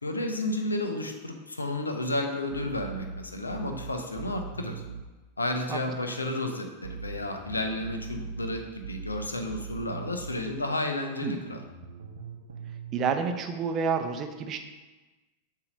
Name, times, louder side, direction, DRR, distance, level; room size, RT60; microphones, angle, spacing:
voice 1, 0.0-4.8 5.4-11.6, left 1 dB, 80° left, 4 dB, 0.6 m, -32 dB
sound 1, 2.5-5.1 6.8-10.4 11.5-13.2, right 5 dB, 70° right, 0.7 m, -40 dB
voice 2, 12.9-14.6, right 6 dB, 30° right, 6 dB, 0.5 m, -29 dB
6.8 x 2.8 x 5.2 m, 1.2 s
figure-of-eight pair, 90°, 0 cm